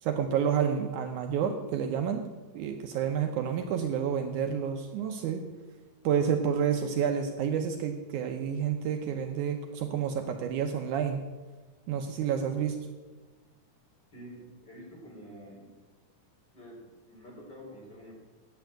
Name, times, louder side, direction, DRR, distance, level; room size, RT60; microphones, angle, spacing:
voice 1, 0.0-2.2 2.5-5.4 6.0-11.2 11.9-12.8, right 8 dB, 75° right, 5 dB, 2.0 m, -29 dB
voice 2, 14.1-15.8 16.5-18.1, equal, 30° left, -2 dB, 3.7 m, -48 dB
9.0 x 8.2 x 8.9 m, 1.3 s
omnidirectional pair, 3.9 m